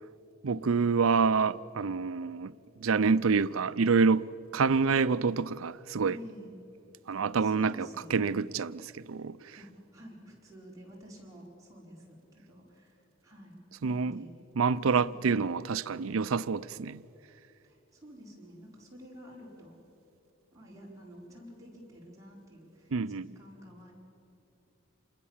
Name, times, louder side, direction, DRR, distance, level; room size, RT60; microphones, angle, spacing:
voice 1, 0.4-2.5 2.8-6.2 7.1-9.6 13.8-14.3 14.6-17.0 22.9-23.3, right 5 dB, 80° right, 0.5 m, -27 dB
voice 2, 6.1-6.5 7.4-8.4 9.5-14.3 14.9-15.2 17.6-19.8 20.5-23.9, equal, 15° right, 5.0 m, -50 dB
27.5 x 21.0 x 7.3 m
head